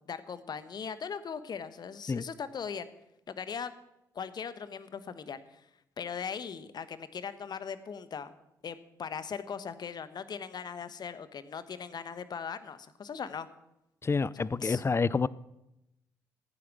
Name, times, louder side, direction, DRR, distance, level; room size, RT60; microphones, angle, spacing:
voice 1, 0.0-2.9 3.3-3.7 4.1-5.6 6.0-8.3 8.6-13.5 14.6-14.8, left 6 dB, 50° left, 13 dB, 1.2 m, -39 dB
voice 2, 14.0-15.3, left 4 dB, 25° left, 21 dB, 0.5 m, -28 dB
15.5 x 9.6 x 6.3 m, 0.87 s
hypercardioid pair, 45°, 9 cm